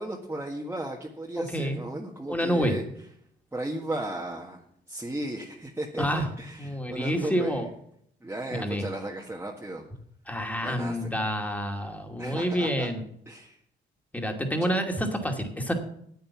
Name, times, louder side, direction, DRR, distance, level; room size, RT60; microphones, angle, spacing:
voice 1, 0.0-2.8 3.5-4.6 4.9-7.6 8.2-9.8 10.6-11.1 12.2-12.9 13.3-13.6, right 1 dB, 10° right, -1 dB, 1.5 m, -35 dB
voice 2, 1.4-1.8 2.3-2.7 6.0-6.3 6.6-7.7 8.5-8.8 10.3-13.0 14.1-15.7, equal, 5° left, 4 dB, 2.2 m, -28 dB
9.2 x 8.6 x 7.1 m, 0.69 s
cardioid pair, 90°, 20 cm